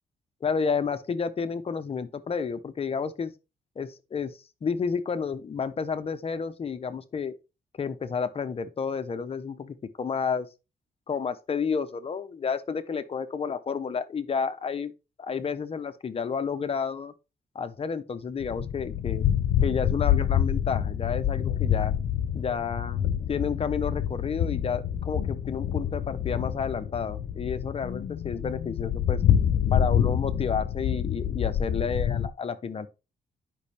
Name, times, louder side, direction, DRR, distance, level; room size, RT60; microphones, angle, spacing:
voice 1, 0.4-3.3 3.8-7.3 7.8-10.5 11.1-14.9 15.2-17.1 17.5-19.3 19.6-21.9 22.3-29.2 29.7-32.9, left 6 dB, 40° left, 0.8 m, -31 dB
sound 1, 18.4-32.3, left 9 dB, 75° left, 0.8 m, -27 dB
11.0 x 5.5 x 3.4 m
wide cardioid pair, 150°, 16 cm